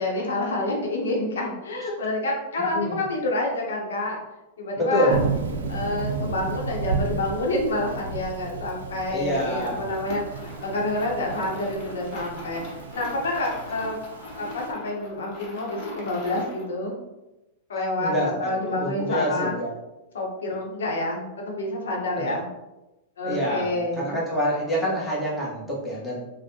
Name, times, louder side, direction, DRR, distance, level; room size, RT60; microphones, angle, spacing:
voice 1, 0.0-4.2 4.6-5.2 5.7-14.0 14.4-16.9 17.7-19.5 20.1-22.5 23.2-24.2, left 2 dB, 90° left, -1 dB, 0.7 m, -28 dB
voice 2, 4.8-5.2 9.1-9.8 18.0-19.7 22.2-22.4 23.2-26.2, equal, 5° left, -6 dB, 1.0 m, -26 dB
Thunder / Rain, 5.1-14.7, right 5 dB, 85° right, 0.4 m, -33 dB
sound 1, 9.4-16.7, left 2 dB, 45° left, 1.0 m, -41 dB
3.3 x 2.1 x 2.7 m, 0.99 s
hypercardioid pair, 125°, 0 cm